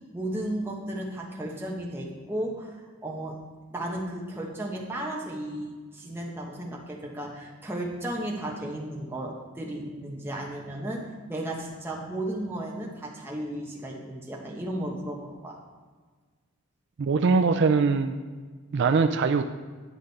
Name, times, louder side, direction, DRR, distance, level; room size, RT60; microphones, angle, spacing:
voice 1, 0.1-3.4 3.7-15.6, right 1 dB, 10° right, -2 dB, 1.1 m, -34 dB
voice 2, 17.0-18.2 18.7-19.4, right 4 dB, 55° right, 7 dB, 0.4 m, -22 dB
10.0 x 5.0 x 4.1 m, 1.5 s
head